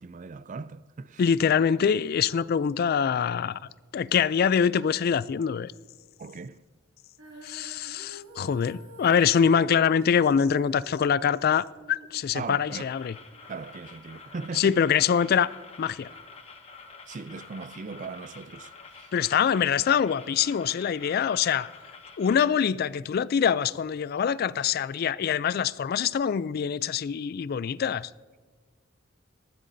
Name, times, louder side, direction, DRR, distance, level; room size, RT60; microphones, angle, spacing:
voice 1, 0.0-1.4 6.2-6.6 12.3-12.9 13.5-14.8 17.1-19.1, right 4 dB, 40° right, 0.4 m, -39 dB
voice 2, 1.2-3.6 3.9-5.7 7.4-13.1 14.5-15.5 15.8-16.1 19.1-21.7 22.2-28.1, left 7 dB, 50° left, 0.3 m, -24 dB
Female singing, 7.2-13.4, right 1 dB, 70° right, 2.3 m, -50 dB
sound 1, 12.7-22.5, left 4 dB, 30° left, 1.1 m, -48 dB
19.5 x 14.0 x 2.7 m
head